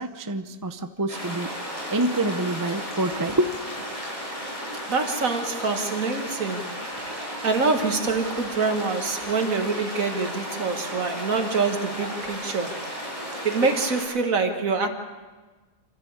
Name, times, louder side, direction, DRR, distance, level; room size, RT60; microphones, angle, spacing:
voice 1, 0.0-3.6, right 1 dB, 20° right, 8 dB, 0.5 m, -27 dB
sound 1, 1.1-14.0, equal, 20° left, 6.9 m, -34 dB
voice 2, 4.9-6.6 7.4-12.8 13.4-14.9, right 4 dB, 55° right, 6 dB, 2.0 m, -25 dB
26.5 x 14.0 x 8.7 m, 1.3 s
omnidirectional pair, 1.7 m